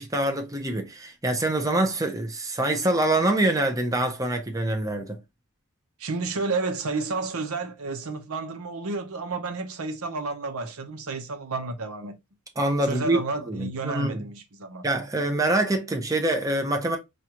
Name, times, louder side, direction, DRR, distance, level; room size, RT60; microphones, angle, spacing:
voice 1, 0.0-5.2 12.6-13.2 13.5-14.3 14.8-17.0, right 1 dB, 15° right, 0.7 m, -25 dB
voice 2, 6.0-12.2 12.9-14.8, right 3 dB, 85° right, 0.8 m, -31 dB
4.8 x 2.4 x 2.9 m
head